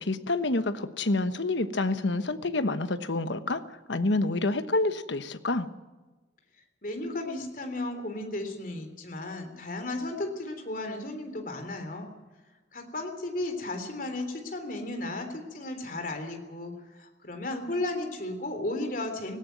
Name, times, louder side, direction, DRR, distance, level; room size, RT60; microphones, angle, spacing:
voice 1, 0.0-3.6 3.9-5.7, left 2 dB, 70° left, 11 dB, 1.1 m, -28 dB
voice 2, 6.8-12.1 12.7-16.7 17.0-19.4, left 2 dB, 45° left, 5 dB, 3.4 m, -34 dB
18.0 x 17.0 x 9.2 m, 1.2 s
head